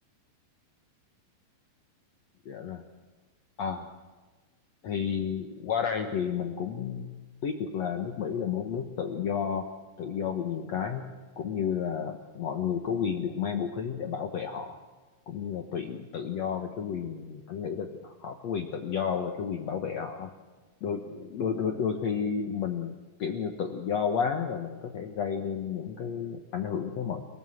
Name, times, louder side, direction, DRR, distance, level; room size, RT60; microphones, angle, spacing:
voice 1, 2.4-2.8 3.6-3.9 4.8-7.1 7.4-9.7 10.0-11.1 11.4-14.8 15.3-20.3 20.8-27.2, left 7 dB, 80° left, 5 dB, 1.5 m, -31 dB
27.5 x 18.5 x 7.9 m, 1.3 s
omnidirectional pair, 5.1 m